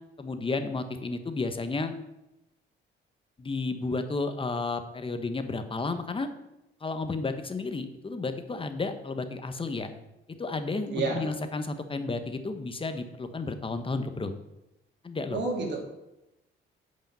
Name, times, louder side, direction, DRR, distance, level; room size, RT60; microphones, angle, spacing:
voice 1, 0.2-1.9 3.4-6.3 6.8-9.9 10.4-14.3 15.0-15.4, left 3 dB, 25° left, 8 dB, 1.2 m, -32 dB
voice 2, 10.9-11.3 15.3-15.8, right 3 dB, 65° right, 0 dB, 2.9 m, -29 dB
9.0 x 5.5 x 7.5 m, 0.92 s
cardioid pair, 90°, 20 cm